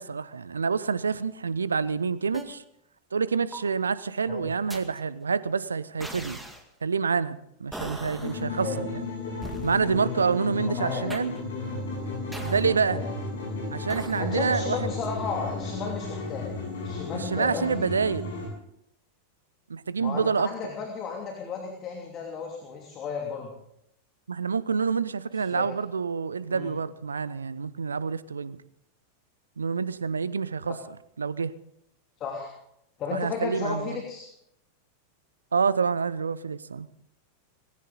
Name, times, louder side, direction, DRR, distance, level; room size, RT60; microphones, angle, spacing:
voice 1, 0.0-2.6 3.1-6.4 6.8-9.0 9.6-11.3 12.4-13.0 13.7-14.8 17.1-18.3 19.7-20.5 24.3-28.6 29.6-30.7 31.2-31.5 33.1-34.0 35.5-36.9, right 5 dB, 75° right, 18 dB, 0.7 m, -27 dB
sound 1, 2.3-2.4 3.5-3.8 4.7-5.0 6.0-6.6 7.7-8.4 9.4-9.9 11.1-11.4 12.3-12.8 13.9-14.2, right 1 dB, 5° right, 2.1 m, -39 dB
sound 2, 8.2-18.5, left 3 dB, 60° left, 7.7 m, -34 dB
voice 2, 10.6-11.1 12.9-13.1 14.2-16.5 16.8-17.9 20.0-23.5 25.3-25.7 26.5-26.7 32.2-32.5 33.0-34.3, left 6 dB, 30° left, 1 dB, 2.9 m, -34 dB
20.0 x 17.0 x 4.0 m, 0.77 s
figure-of-eight pair, 90°, 0 cm